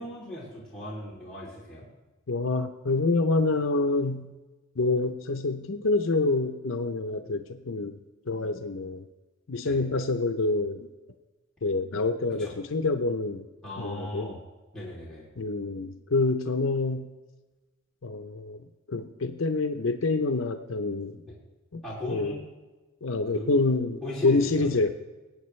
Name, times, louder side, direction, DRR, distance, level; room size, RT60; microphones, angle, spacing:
voice 1, 0.0-1.9 9.6-9.8 12.4-12.5 13.6-14.4 14.7-15.3 21.8-22.4 23.3-23.5 24.0-24.7, left 1 dB, 5° left, -9 dB, 2.9 m, -37 dB
voice 2, 2.3-4.3 4.8-8.0 8.3-9.0 9.5-10.9 11.6-13.5 13.8-14.3 15.4-17.0 18.0-18.6 18.9-21.2 21.7-21.8 22.1-22.4 23.0-24.9, left 3 dB, 65° left, 7 dB, 0.7 m, -27 dB
20.5 x 8.8 x 3.2 m, 1.2 s
head